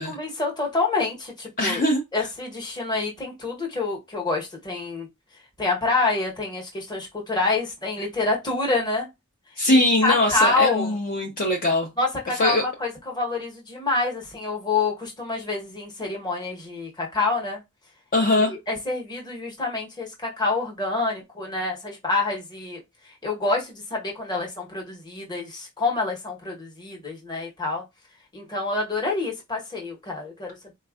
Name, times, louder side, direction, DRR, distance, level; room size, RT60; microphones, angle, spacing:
voice 1, 0.0-1.8 2.1-5.1 5.6-9.1 9.7-10.9 12.0-17.6 18.3-22.8 23.2-27.8 28.3-30.7, left 3 dB, 20° left, 1.0 m, -27 dB
voice 2, 1.6-2.3 9.6-11.9 12.4-12.6 18.1-18.5, left 1 dB, 40° left, 0.6 m, -21 dB
4.1 x 2.4 x 2.4 m
head